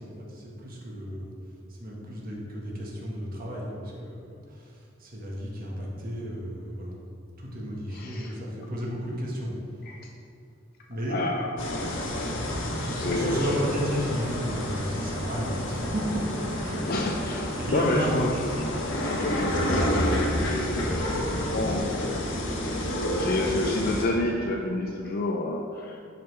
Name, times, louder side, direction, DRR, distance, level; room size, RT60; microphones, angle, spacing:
voice 1, 0.0-1.3 1.8-4.7 5.0-7.0 7.4-9.5 10.9-11.2 12.8-16.2 16.6-17.0 17.3-18.3, equal, 50° right, -3 dB, 1.5 m, -33 dB
voice 2, 7.9-8.4 9.8-10.1 11.1-13.6 16.9-22.3 23.1-26.0, left 2 dB, 50° left, 1 dB, 0.5 m, -30 dB
sound 1, 11.6-24.0, equal, 80° left, 1.3 m, -29 dB
10.0 x 5.2 x 3.4 m, 2.5 s
head